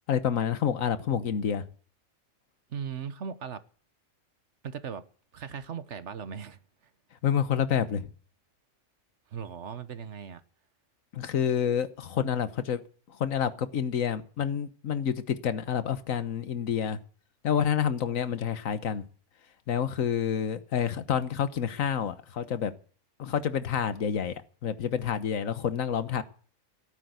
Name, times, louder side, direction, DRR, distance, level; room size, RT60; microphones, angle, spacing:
voice 1, 0.1-1.7 7.2-8.1 11.1-12.8 13.1-17.0 17.4-19.0 19.7-22.7 23.2-26.2, left 8 dB, 85° left, 1.5 m, -28 dB
voice 2, 2.7-3.6 4.6-5.0 5.3-6.6 9.3-10.4, right 7 dB, 65° right, 1.3 m, -38 dB
16.0 x 9.2 x 8.1 m
omnidirectional pair, 1.4 m